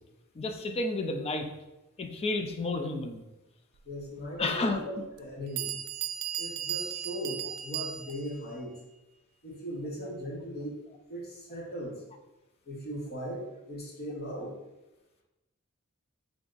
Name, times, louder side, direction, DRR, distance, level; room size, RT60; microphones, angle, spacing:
voice 1, 0.4-1.5 2.0-3.2 4.4-5.0, left 2 dB, 30° left, 6 dB, 0.3 m, -31 dB
voice 2, 3.8-5.7 6.4-8.7 9.4-10.8 11.1-12.0 12.6-14.6, equal, 50° left, -3 dB, 1.0 m, -38 dB
Bell, 4.4-4.5 5.2-5.3 5.6-8.4, right 10 dB, 85° right, 0.3 m, -36 dB
3.4 x 2.4 x 3.8 m, 1.0 s
head